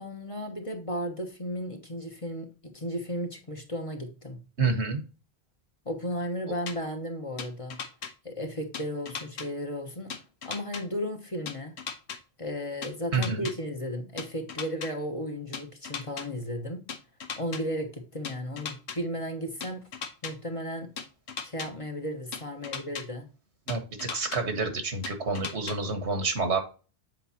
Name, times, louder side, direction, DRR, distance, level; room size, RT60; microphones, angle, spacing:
voice 1, 0.0-4.4 5.8-7.8 8.2-10.2 10.4-11.7 12.4-16.8 17.4-19.8 20.2-20.9 21.4-23.3, equal, 30° left, 3 dB, 1.1 m, -34 dB
voice 2, 4.6-5.0 13.1-13.5 23.7-26.6, right 4 dB, 85° right, 6 dB, 1.7 m, -28 dB
sound 1, 6.7-6.8 7.4-8.1 8.7-9.5 10.1-10.8 11.5-12.2 12.8-13.5 14.2-14.9 15.5-16.2 16.9-17.6 18.2-19.0 19.6-20.3 21.0-21.7 22.3-23.0 23.7-24.4 25.0-25.8, left 6 dB, 85° left, 1.1 m, -37 dB
7.8 x 4.6 x 2.8 m, 0.35 s
omnidirectional pair, 1.1 m